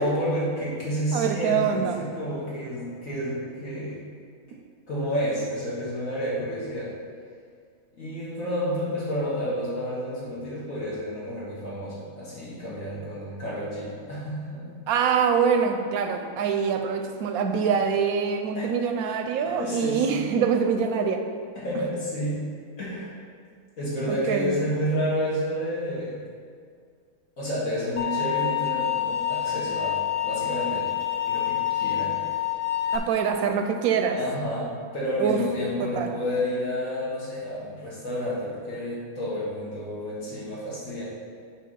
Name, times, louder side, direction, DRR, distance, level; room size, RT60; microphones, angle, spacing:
voice 1, 0.0-4.0 4.9-6.9 8.0-14.7 18.5-18.7 19.4-20.3 21.6-22.4 22.8-23.2 23.8-26.3 27.4-30.0 30.2-30.9 31.3-32.2 34.1-41.0, equal, 65° left, -8 dB, 2.3 m, -30 dB
voice 2, 1.1-2.0 14.9-21.2 24.1-24.6 32.9-34.2 35.2-35.5 35.8-36.1, right 6 dB, 85° right, 5 dB, 1.1 m, -24 dB
sound 1, 28.0-33.0, left 11 dB, 35° left, 0.7 m, -27 dB
8.4 x 3.3 x 5.5 m, 2.1 s
omnidirectional pair, 1.5 m